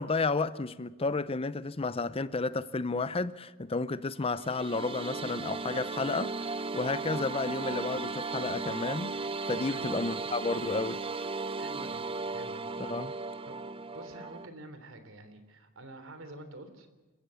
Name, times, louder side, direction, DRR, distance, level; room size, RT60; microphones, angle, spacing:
voice 1, 0.0-9.2 9.5-11.0 12.8-13.1, left 3 dB, 30° left, 0.6 m, -32 dB
sound 1, 4.3-14.5, right 3 dB, 25° right, 0.6 m, -36 dB
voice 2, 11.6-12.0 12.3-13.1 13.5-16.9, right 1 dB, 70° right, 3.4 m, -48 dB
28.5 x 15.5 x 7.0 m
head